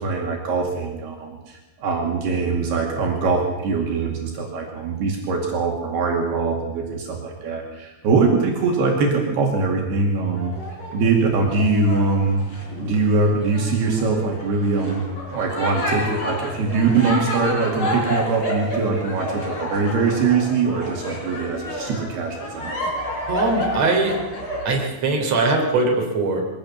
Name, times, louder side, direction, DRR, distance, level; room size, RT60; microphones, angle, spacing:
voice 1, 0.0-10.5 10.9-12.4 12.8-15.1 15.3-22.8, right 4 dB, 70° right, 0 dB, 4.2 m, -22 dB
sound 1, 10.2-24.7, left 1 dB, 30° left, 5.2 m, -30 dB
voice 2, 23.3-24.2 24.6-26.4, right 3 dB, 40° right, 1 dB, 4.5 m, -21 dB
23.0 x 17.0 x 7.2 m, 1.0 s
omnidirectional pair, 4.9 m